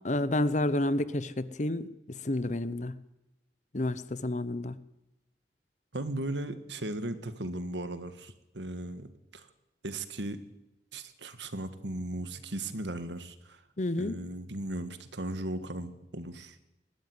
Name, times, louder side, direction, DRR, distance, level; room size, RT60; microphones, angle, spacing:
voice 1, 0.0-2.9 3.7-4.8 13.8-14.2, left 1 dB, 40° left, 16 dB, 0.9 m, -30 dB
voice 2, 5.9-9.5 9.8-10.4 10.9-13.6 14.0-16.6, right 1 dB, 85° right, 11 dB, 1.7 m, -37 dB
20.0 x 15.0 x 9.7 m, 0.95 s
head